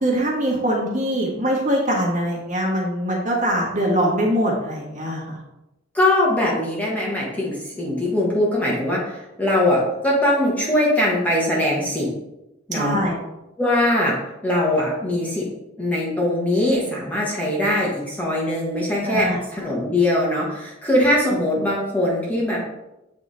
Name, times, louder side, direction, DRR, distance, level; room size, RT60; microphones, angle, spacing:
voice 1, 0.0-5.4 12.7-13.1 19.0-19.4, equal, 40° right, -3 dB, 1.7 m, -22 dB
voice 2, 5.9-12.1 12.7-13.0 13.6-14.2 14.4-15.4 15.8-22.6, left 1 dB, 10° left, -4 dB, 1.3 m, -21 dB
8.2 x 3.5 x 4.0 m, 0.93 s
head